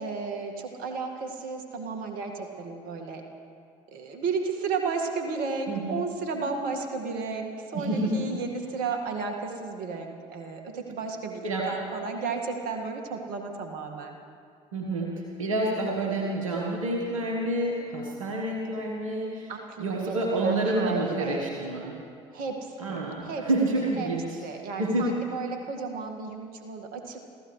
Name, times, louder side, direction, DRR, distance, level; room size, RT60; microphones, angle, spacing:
voice 1, 0.0-3.2 3.9-14.2 19.5-21.5 22.3-24.1 24.4-27.2, right 4 dB, 60° right, 3 dB, 1.9 m, -33 dB
voice 2, 5.7-6.0 7.7-8.2 11.4-11.7 14.7-19.5 19.8-22.0 22.8-24.4 24.8-25.1, right 1 dB, 85° right, -1 dB, 1.5 m, -28 dB
29.5 x 15.0 x 3.3 m, 2.4 s
hypercardioid pair, 55°, 17 cm